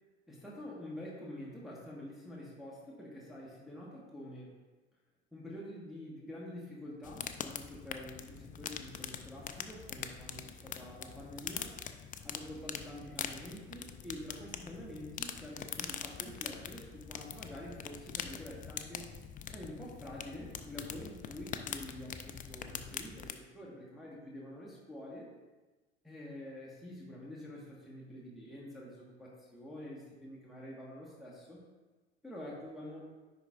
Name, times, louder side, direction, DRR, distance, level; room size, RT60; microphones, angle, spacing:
voice 1, 0.3-4.6 5.3-11.8 12.2-19.1 19.5-25.3 26.0-31.6 32.2-33.1, left 1 dB, ahead, -6 dB, 1.5 m, -47 dB
sound 1, 7.0-23.3, left 8 dB, 25° left, 0.4 m, -43 dB
10.0 x 4.2 x 2.5 m, 1.3 s
hypercardioid pair, 70°, 34 cm